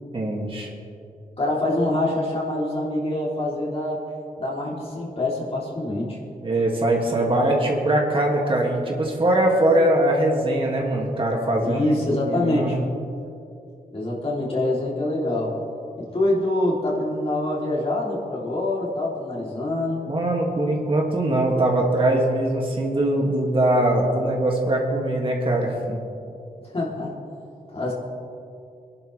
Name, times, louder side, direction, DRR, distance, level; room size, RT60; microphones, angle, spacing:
voice 1, 0.1-0.7 6.4-11.8 12.1-12.8 20.1-26.0, right 1 dB, 35° right, -1 dB, 2.5 m, -22 dB
voice 2, 1.4-4.0 4.4-6.2 11.6-12.8 13.9-15.5 16.0-20.0 26.6-27.2 27.7-27.9, left 1 dB, 40° left, -5 dB, 3.6 m, -25 dB
24.5 x 11.0 x 3.5 m, 2.6 s
cardioid pair, 90°, 15 cm